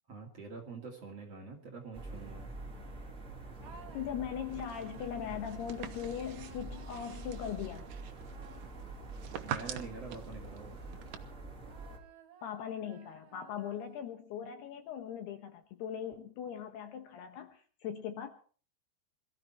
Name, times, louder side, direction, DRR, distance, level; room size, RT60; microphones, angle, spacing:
voice 1, 0.1-2.5 9.4-10.8, right 4 dB, 40° right, 0 dB, 2.7 m, -46 dB
sound 1, 1.9-12.0, right 2 dB, 20° right, 2.4 m, -46 dB
voice 2, 3.6-7.9 12.4-18.3, left 9 dB, 70° left, 7 dB, 2.7 m, -40 dB
sound 2, 3.6-9.8 10.4-14.3, right 7 dB, 65° right, 1.9 m, -59 dB
sound 3, 4.5-11.2, right 9 dB, 80° right, 1.9 m, -46 dB
22.5 x 14.0 x 4.4 m, 0.43 s
omnidirectional pair, 5.6 m